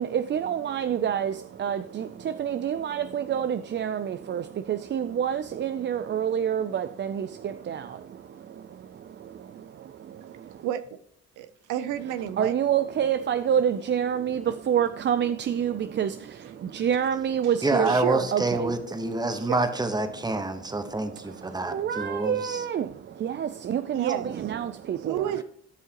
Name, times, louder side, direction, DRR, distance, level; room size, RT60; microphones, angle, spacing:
voice 1, 0.0-10.7 12.3-18.0 18.3-18.7 20.9-25.4, right 9 dB, 40° right, 0.4 m, -28 dB
voice 2, 11.4-12.5 15.7-16.1 16.5-16.7 17.9-18.3 19.5-19.6 23.9-24.3 25.0-25.4, right 11 dB, 90° right, 0.6 m, -30 dB
voice 3, 17.6-22.7, right 2 dB, 15° right, 1.1 m, -27 dB
14.0 x 5.5 x 2.9 m
cardioid pair, 90°, 30 cm